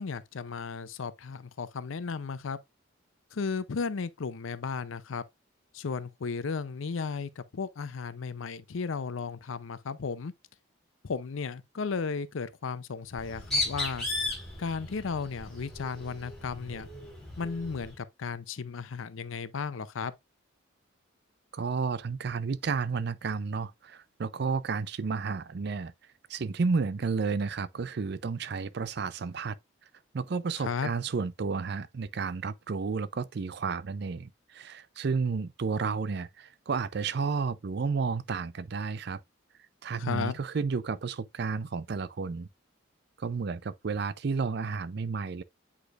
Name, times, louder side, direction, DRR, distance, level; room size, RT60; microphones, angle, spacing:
voice 1, 0.0-2.6 3.3-5.2 5.7-10.3 11.0-14.1 14.6-16.9 17.4-20.1 30.6-30.9 40.0-40.4, left 5 dB, 80° left, 0.5 m, -34 dB
Bird, 13.1-18.0, left 2 dB, ahead, 3.6 m, -36 dB
voice 2, 21.5-25.9 26.3-29.5 30.1-39.2 39.8-42.5 43.2-45.4, right 4 dB, 55° right, 0.4 m, -32 dB
8.2 x 4.9 x 2.4 m
head